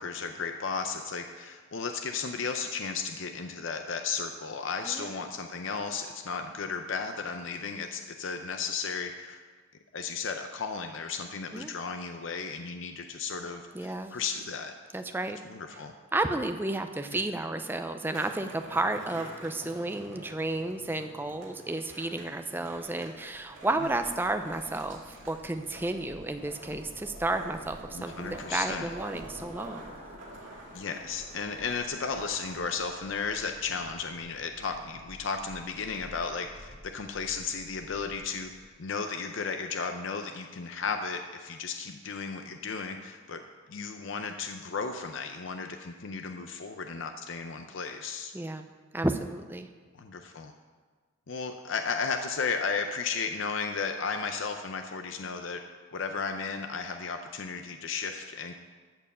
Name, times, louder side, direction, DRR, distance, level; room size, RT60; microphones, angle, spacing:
voice 1, 0.0-9.4 9.9-14.7 15.4-15.9 17.1-17.2 27.9-28.9 30.7-38.5 38.8-43.4 43.7-48.3 49.9-50.5 51.3-55.6 55.9-58.5, left 5 dB, 65° left, 6 dB, 0.6 m, -34 dB
voice 2, 4.9-5.3 11.5-11.7 13.7-14.2 14.9-15.4 16.1-29.9 48.3-48.7 48.9-49.7, right 2 dB, 10° right, 7 dB, 0.5 m, -32 dB
Skateboard, 18.0-36.6, right 1 dB, 70° right, 2.4 m, -48 dB
sound 1, 22.7-38.7, equal, 90° left, 2.1 m, -53 dB
13.5 x 4.6 x 7.3 m, 1.5 s
head